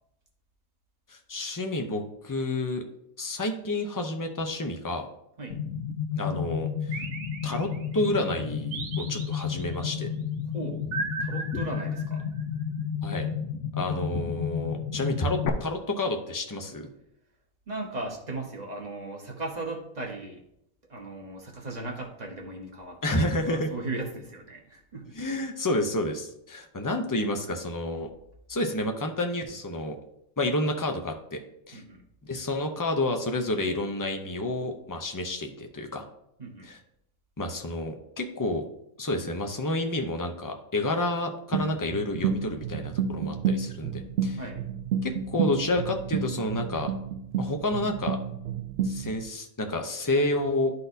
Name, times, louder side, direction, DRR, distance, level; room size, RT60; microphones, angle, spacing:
voice 1, 1.1-2.8 3.2-5.1 6.2-7.0 7.4-10.1 13.0-13.3 13.8-16.9 23.0-23.7 25.1-28.1 28.5-30.0 30.4-31.4 31.7-31.8 32.2-36.1 36.6-36.8 37.4-38.6 39.0-44.4 45.0-46.9 47.4-48.2 48.8-50.7, left 1 dB, 30° left, 4 dB, 0.3 m, -29 dB
sound 1, 5.5-15.5, left 7 dB, 65° left, 1.0 m, -32 dB
sound 2, 6.9-8.0 8.7-9.8 10.9-12.4, right 3 dB, 85° right, 1.4 m, -37 dB
voice 2, 11.2-12.2 17.7-20.4 20.9-25.2 31.7-32.0 36.4-36.7 44.3-44.6, right 2 dB, 30° right, 0 dB, 1.2 m, -37 dB
sound 3, 41.5-49.2, right 6 dB, 65° right, 0.7 m, -30 dB
11.0 x 4.1 x 2.7 m, 0.76 s
omnidirectional pair, 1.5 m